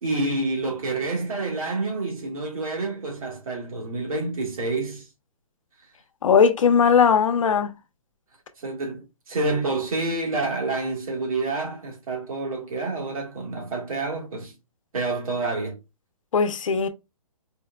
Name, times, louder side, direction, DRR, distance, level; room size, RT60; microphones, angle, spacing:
voice 1, 0.0-5.1 8.6-14.5 14.9-15.8, right 3 dB, 75° right, 1.6 m, -28 dB
voice 2, 6.2-7.7 16.3-16.9, left 6 dB, 60° left, 0.8 m, -18 dB
4.4 x 3.4 x 2.2 m
hypercardioid pair, 175°, 19 cm